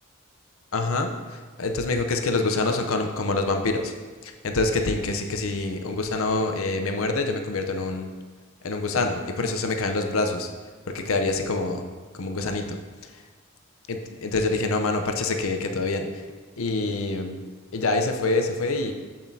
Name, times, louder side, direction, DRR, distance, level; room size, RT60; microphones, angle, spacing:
voice 1, 0.7-3.9 4.2-8.1 8.6-10.5 10.9-11.8 12.1-12.8 13.9-16.2 16.6-17.4 17.7-18.9, left 3 dB, 75° left, 5 dB, 0.7 m, -26 dB
7.8 x 7.2 x 2.8 m, 1.5 s
head